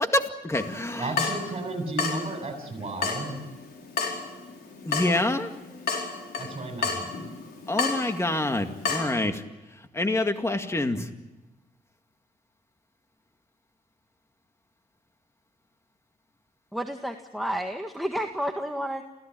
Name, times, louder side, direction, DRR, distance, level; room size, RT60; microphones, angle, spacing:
voice 1, 0.0-1.1 4.9-5.5 7.7-9.4 9.9-11.1, left 2 dB, 15° left, 6 dB, 2.1 m, -26 dB
Water tap faucet / Drip, 0.5-9.1, left 5 dB, 80° left, 4.7 m, -32 dB
voice 2, 1.0-3.4 6.3-7.2, right 2 dB, 40° right, 4 dB, 7.9 m, -33 dB
voice 3, 16.7-19.0, equal, ahead, 4 dB, 1.7 m, -31 dB
28.0 x 16.5 x 9.1 m, 1.1 s
cardioid pair, 95°, 16 cm